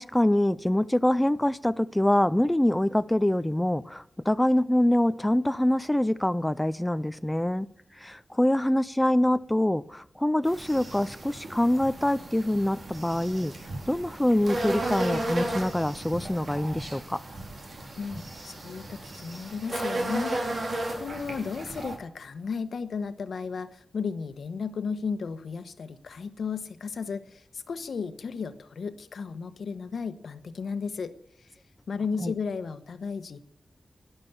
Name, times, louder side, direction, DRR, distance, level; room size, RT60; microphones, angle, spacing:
voice 1, 0.0-7.7 8.0-13.5 13.9-17.2 32.2-32.3, left 1 dB, 10° left, 14 dB, 0.4 m, -25 dB
sound 1, 10.4-21.9, right 1 dB, 55° right, 4.1 m, -34 dB
voice 2, 18.0-31.1 31.4-31.5 31.9-33.4, left 5 dB, 85° left, 12 dB, 1.1 m, -34 dB
12.0 x 11.0 x 7.1 m, 0.69 s
wide cardioid pair, 160°, 0 cm